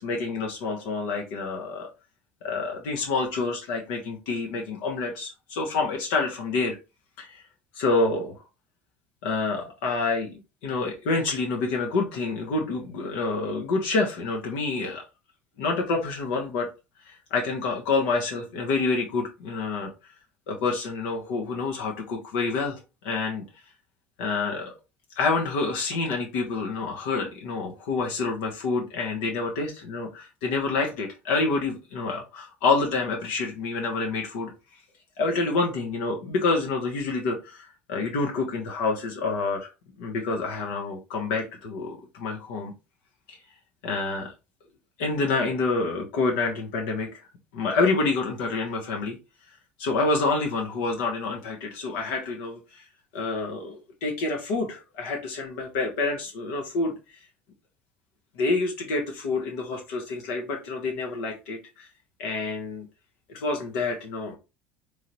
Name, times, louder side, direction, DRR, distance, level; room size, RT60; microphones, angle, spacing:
voice 1, 0.0-1.9 2.4-6.8 7.2-7.4 7.7-8.4 9.2-15.0 15.6-16.7 17.1-19.9 20.5-23.4 24.2-24.7 25.2-34.5 35.2-39.7 40.0-42.7 43.3-43.4 43.8-44.3 45.0-47.2 47.5-49.2 49.8-52.8 53.1-57.2 58.4-61.9 62.2-62.9 63.3-64.4, left 3 dB, 65° left, 0.9 m, -28 dB
3.7 x 3.2 x 2.9 m
figure-of-eight pair, 65°, 7 cm